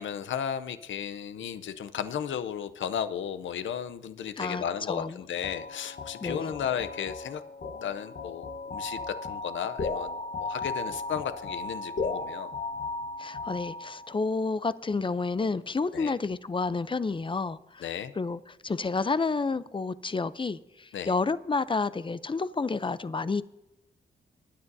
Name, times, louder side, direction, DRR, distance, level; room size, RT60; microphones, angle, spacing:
voice 1, 0.0-7.4 7.8-12.5 15.9-16.1 17.8-18.1 20.9-21.1, left 8 dB, 85° left, 12 dB, 0.7 m, -34 dB
voice 2, 4.4-5.1 6.2-6.5 13.2-17.8 18.2-23.4, left 4 dB, 25° left, 15 dB, 0.6 m, -30 dB
sound 1, 5.4-14.1, left 3 dB, 55° left, 1.2 m, -36 dB
20.0 x 9.7 x 2.7 m, 0.91 s
cardioid pair, 65°, 20 cm